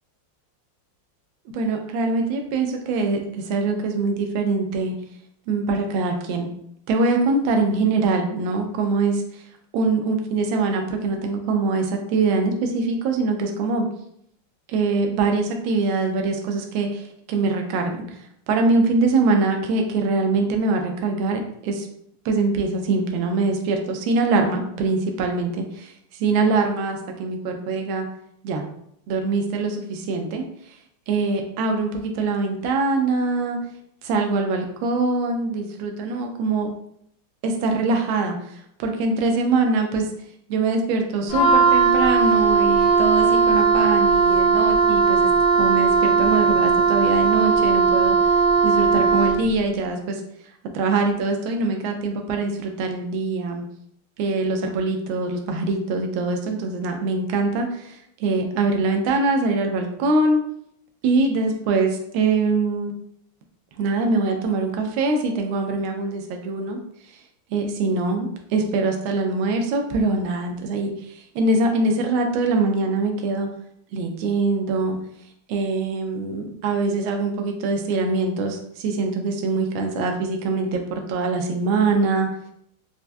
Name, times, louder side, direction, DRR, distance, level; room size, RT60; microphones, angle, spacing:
voice 1, 1.5-4.9 5.5-6.5 6.9-9.4 9.7-13.9 14.7-18.2 18.5-21.9 22.2-28.1 28.4-28.6 29.1-30.4 31.1-33.6 34.0-36.7 37.4-40.1 40.5-45.3 45.6-48.2 48.6-50.2 50.7-53.6 54.2-60.4 61.0-62.9 63.8-66.8 67.5-73.5 73.9-75.0 75.5-82.3, right 3 dB, 75° right, 3 dB, 1.3 m, -23 dB
Wind instrument woodwind instrument, 41.3-49.5, right 5 dB, 85° left, 1.5 m, -18 dB
4.5 x 2.2 x 2.5 m, 0.70 s
omnidirectional pair, 2.4 m